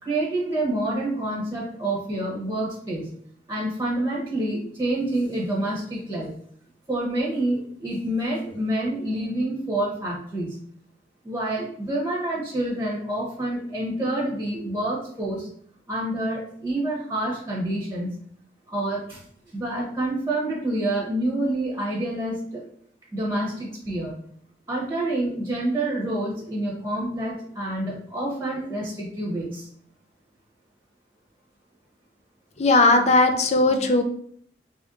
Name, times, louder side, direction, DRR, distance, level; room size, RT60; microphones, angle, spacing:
voice 1, 0.0-3.1 3.5-6.3 6.9-10.6 11.2-15.5 15.9-18.2 18.7-19.2 19.5-22.6 23.1-24.1 24.7-29.7, right 1 dB, 15° right, -4 dB, 0.9 m, -27 dB
voice 2, 32.6-34.0, left 2 dB, 40° left, 6 dB, 0.5 m, -18 dB
3.4 x 2.6 x 3.6 m, 0.63 s
head